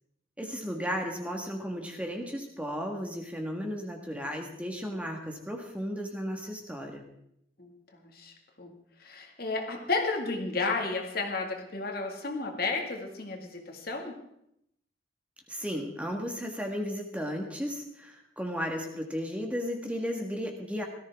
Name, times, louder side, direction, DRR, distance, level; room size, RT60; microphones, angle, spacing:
voice 1, 0.4-7.0 15.5-20.8, equal, 5° right, 2 dB, 1.6 m, -34 dB
voice 2, 7.6-8.7 9.0-14.2, left 3 dB, 55° left, 2 dB, 2.1 m, -33 dB
18.0 x 13.5 x 3.6 m, 0.77 s
head